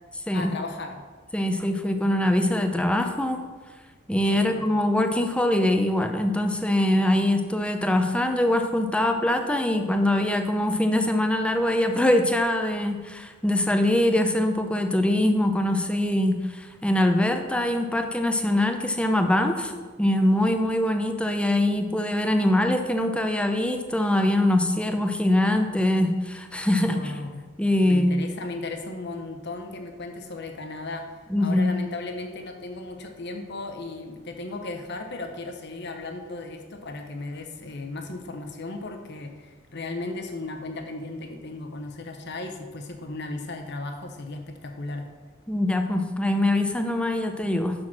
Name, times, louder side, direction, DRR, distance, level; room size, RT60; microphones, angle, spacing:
voice 1, 0.3-1.0 4.3-4.8 26.8-27.4 27.8-45.1, left 2 dB, 55° left, 5 dB, 1.0 m, -36 dB
voice 2, 1.3-3.4 4.1-19.7 20.0-27.1 27.6-28.1 31.3-31.7 45.5-47.7, left 1 dB, 5° left, 5 dB, 0.6 m, -23 dB
6.4 x 6.0 x 6.0 m, 1.4 s
head